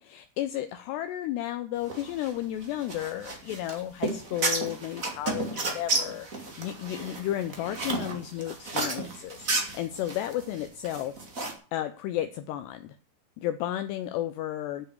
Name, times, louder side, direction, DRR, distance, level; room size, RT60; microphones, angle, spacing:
voice 1, 0.0-11.1 11.7-13.0 13.4-14.9, left 12 dB, 80° left, 9 dB, 2.6 m, -33 dB
sound 1, 1.8-11.5, right 3 dB, 40° right, 1.2 m, -32 dB
10.5 x 7.6 x 8.4 m, 0.39 s
omnidirectional pair, 5.5 m